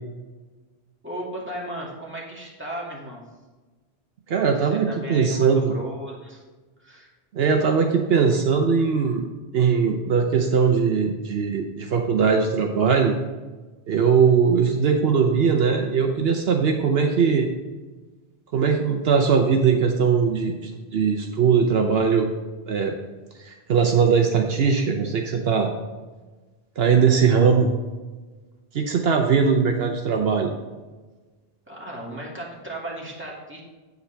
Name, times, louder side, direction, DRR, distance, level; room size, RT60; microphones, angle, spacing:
voice 1, 1.0-3.2 4.4-6.4 6.8-7.1 31.7-33.6, right 1 dB, 10° right, -4 dB, 2.1 m, -35 dB
voice 2, 4.3-5.7 7.3-9.2 9.5-13.1 13.9-17.5 18.5-22.3 22.7-23.0 23.4-25.7 26.8-27.7 28.7-30.5, right 6 dB, 70° right, 3 dB, 1.0 m, -20 dB
8.3 x 8.0 x 3.4 m, 1.3 s
omnidirectional pair, 1.1 m